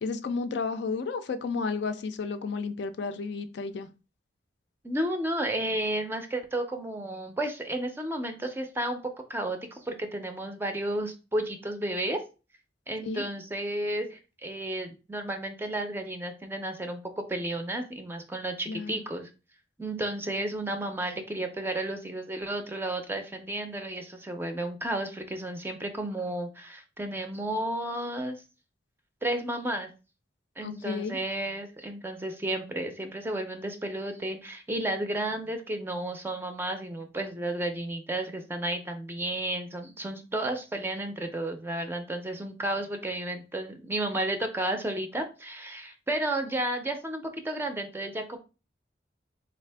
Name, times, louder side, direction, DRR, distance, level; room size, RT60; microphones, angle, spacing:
voice 1, 0.0-3.9 13.0-13.3 18.7-19.1 30.6-31.2, left 4 dB, 65° left, 0.4 m, -32 dB
voice 2, 4.8-12.2 12.9-19.3 19.8-28.4 29.2-29.9 30.6-48.4, right 1 dB, 15° right, 0.4 m, -32 dB
3.5 x 2.5 x 3.3 m
head